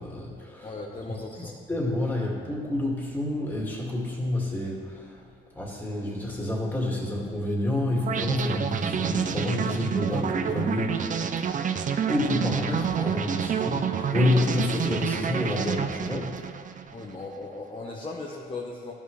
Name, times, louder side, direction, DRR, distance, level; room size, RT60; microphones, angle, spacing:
voice 1, 0.0-0.7 1.4-5.2 5.5-11.2 12.1-16.4, left 1 dB, 10° left, -3 dB, 2.1 m, -28 dB
voice 2, 0.6-1.5 16.9-18.9, left 3 dB, 25° left, -2 dB, 0.9 m, -37 dB
sound 1, 8.1-17.1, right 7 dB, 40° right, 0.5 m, -28 dB
13.5 x 5.5 x 3.2 m, 2.1 s
cardioid pair, 90°, 20 cm